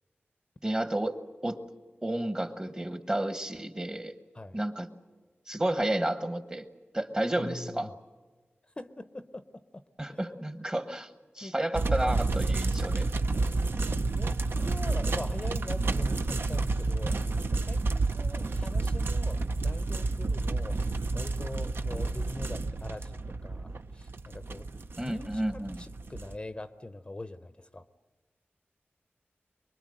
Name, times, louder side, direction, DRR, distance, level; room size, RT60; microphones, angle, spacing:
voice 1, 0.6-1.6 2.0-4.1 4.5-4.9 5.5-6.6 6.9-7.9 10.0-11.1 11.4-13.1 25.0-25.8, right 1 dB, 20° right, 10 dB, 1.1 m, -31 dB
voice 2, 7.4-7.9 8.6-9.8 10.1-10.5 11.4-11.5 13.8-20.8 21.1-24.7 25.0-27.8, left 2 dB, 25° left, 11 dB, 0.7 m, -43 dB
sound 1, 11.7-26.4, right 3 dB, 60° right, 0.7 m, -30 dB
24.0 x 23.0 x 7.7 m, 1.3 s
wide cardioid pair, 105°, 4 cm